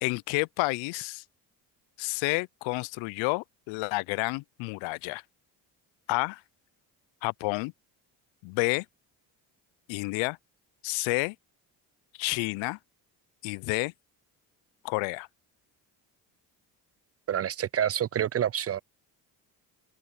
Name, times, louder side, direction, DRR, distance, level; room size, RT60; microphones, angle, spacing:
voice 1, 0.0-1.2 2.0-5.2 6.1-6.4 7.2-7.7 8.4-8.9 9.9-10.4 10.8-11.4 12.2-12.8 13.4-13.9 14.8-15.3, left 26 dB, 80° left, 0.5 m, -30 dB
voice 2, 17.3-18.8, right 10 dB, 35° right, 0.4 m, -28 dB
open air
supercardioid pair, 60°, 45 cm